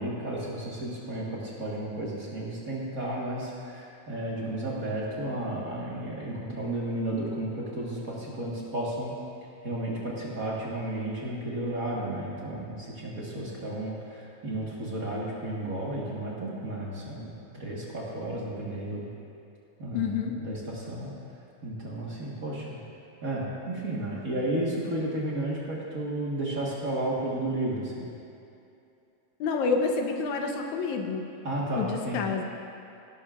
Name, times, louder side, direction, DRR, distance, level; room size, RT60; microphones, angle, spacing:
voice 1, 0.0-9.1 9.6-19.1 19.8-20.1 20.4-21.1 21.6-22.8 23.2-28.1 31.4-32.2, right 1 dB, 40° right, -5 dB, 1.4 m, -33 dB
voice 2, 19.9-20.3 29.4-31.3 31.8-32.4, left 4 dB, 85° left, 3 dB, 2.3 m, -28 dB
17.5 x 11.5 x 2.5 m, 2.7 s
omnidirectional pair, 3.3 m